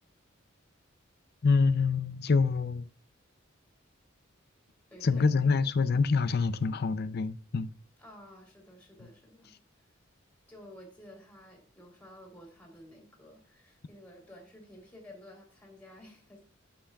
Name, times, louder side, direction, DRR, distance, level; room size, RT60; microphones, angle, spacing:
voice 1, 1.4-2.9 5.0-7.7, left 4 dB, 50° left, 0.5 m, -26 dB
voice 2, 4.9-5.3 8.0-9.5 10.5-16.4, left 1 dB, 5° left, 3.2 m, -52 dB
10.0 x 7.7 x 2.3 m
head